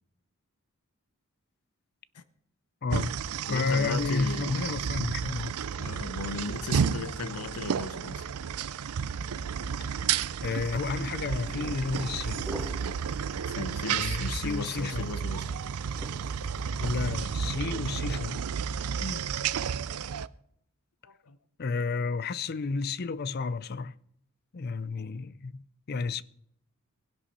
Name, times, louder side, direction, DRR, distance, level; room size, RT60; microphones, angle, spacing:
voice 1, 2.8-3.2 3.5-5.5 9.8-10.0 10.4-12.5 13.9-15.1 16.8-18.5 21.6-24.0 24.5-26.2, left 4 dB, 45° left, 0.4 m, -31 dB
sound 1, 2.9-20.3, right 7 dB, 80° right, 0.5 m, -32 dB
voice 2, 3.5-4.5 5.8-8.2 13.4-15.5 19.0-19.3 21.0-21.4, left 4 dB, 90° left, 0.8 m, -36 dB
sound 2, 11.4-17.3, equal, 5° right, 2.7 m, -45 dB
19.5 x 11.0 x 4.2 m
head